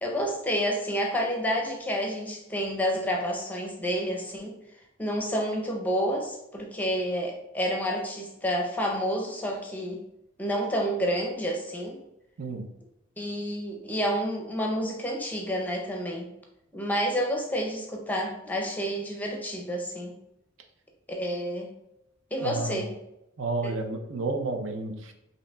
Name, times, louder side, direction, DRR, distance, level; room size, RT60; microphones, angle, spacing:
voice 1, 0.0-4.5 5.0-10.0 10.4-12.0 13.2-16.3 16.7-20.2 21.1-21.7 22.3-22.9 23.6-23.7, equal, 10° left, 0 dB, 0.6 m, -29 dB
voice 2, 22.4-22.8 23.4-25.1, right 3 dB, 70° right, 5 dB, 0.6 m, -31 dB
5.2 x 2.8 x 2.3 m, 0.86 s
head